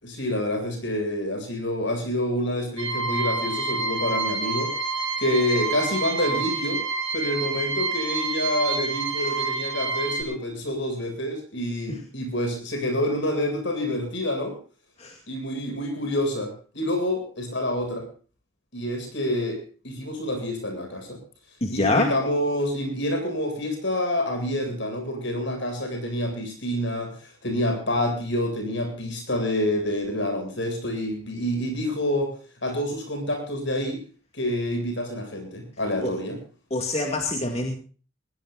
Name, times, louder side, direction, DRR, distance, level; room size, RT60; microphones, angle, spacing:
voice 1, 0.0-4.7 5.2-6.8 7.1-14.5 15.3-18.0 18.7-19.6 19.8-21.2 21.7-27.1 27.4-32.3 32.6-34.0 34.3-36.4, left 1 dB, 60° left, 6 dB, 7.7 m, -27 dB
sound 1, 2.8-10.2, right 4 dB, 80° right, 4.5 m, -28 dB
voice 2, 21.6-22.1 36.0-36.1 36.7-37.8, left 2 dB, 30° left, 3 dB, 2.3 m, -25 dB
21.0 x 20.5 x 2.6 m, 0.38 s
head